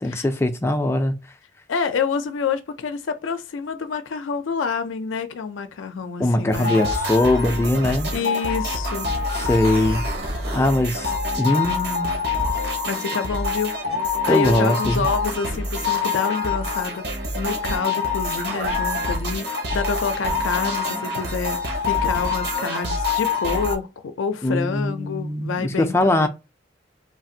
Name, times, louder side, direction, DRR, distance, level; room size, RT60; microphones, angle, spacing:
voice 1, 0.0-1.1 6.2-8.1 9.3-10.1 10.5-11.1 11.4-12.2 14.3-15.1 24.4-26.3, left 1 dB, 15° left, 0.3 m, -21 dB
voice 2, 1.7-6.9 8.1-9.2 12.9-13.7 14.0-17.1 17.3-21.6 21.8-26.3, left 5 dB, 85° left, 0.4 m, -28 dB
sound 1, 6.5-23.8, left 3 dB, 55° right, 0.8 m, -25 dB
3.3 x 2.5 x 2.6 m
head